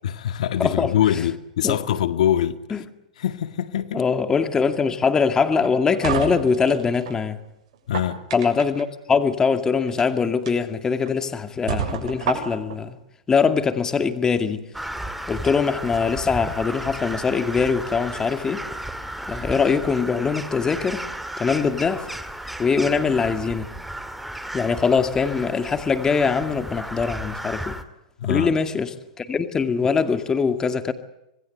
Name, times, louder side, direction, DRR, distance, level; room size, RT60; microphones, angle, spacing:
voice 1, 0.0-2.6 3.2-4.0 7.9-8.2 28.2-28.5, left 11 dB, 75° left, 1.8 m, -23 dB
voice 2, 0.6-0.9 1.6-2.0 2.7-2.8 3.9-7.4 8.3-13.0 13.3-14.7 15.3-18.6 19.3-21.1 21.4-22.1 22.6-23.7 24.5-27.8 28.2-30.9, left 5 dB, 15° left, 2.2 m, -22 dB
sound 1, 5.5-7.2 7.7-8.8 9.8-10.0 10.5-10.6 11.1-11.2 11.7-12.8, right 7 dB, 65° right, 7.0 m, -29 dB
Crow, 14.7-27.8, right 1 dB, ahead, 2.2 m, -34 dB
26.5 x 21.0 x 8.0 m
hypercardioid pair, 130°, 4 cm